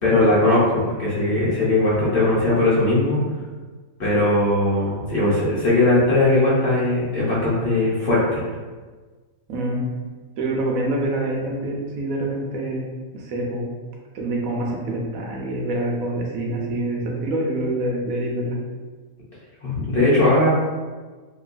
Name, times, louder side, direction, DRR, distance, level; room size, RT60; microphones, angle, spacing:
voice 1, 0.0-3.2 4.0-8.4 19.6-20.5, left 2 dB, 50° left, -8 dB, 0.8 m, -19 dB
voice 2, 9.5-9.8 10.4-12.8 13.1-13.7 14.1-18.6, right 1 dB, 80° right, -1 dB, 1.0 m, -26 dB
2.9 x 2.2 x 2.5 m, 1.4 s
omnidirectional pair, 1.5 m